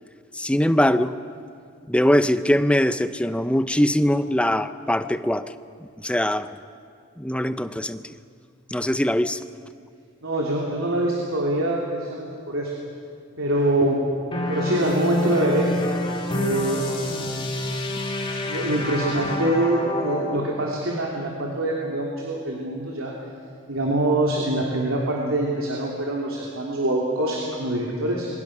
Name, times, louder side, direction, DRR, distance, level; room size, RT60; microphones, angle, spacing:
voice 1, 0.3-1.2 1.9-5.5 6.0-6.5 7.2-8.1 8.7-9.4 18.8-18.9, left 1 dB, 5° left, 11 dB, 0.6 m, -22 dB
voice 2, 10.2-12.7 13.4-14.0 14.5-15.7 16.3-17.3 18.5-23.1 23.7-28.3, right 1 dB, 85° right, -2 dB, 3.3 m, -24 dB
sound 1, 14.3-20.5, left 1 dB, 25° left, 2.3 m, -28 dB
26.5 x 24.5 x 6.2 m, 2.3 s
head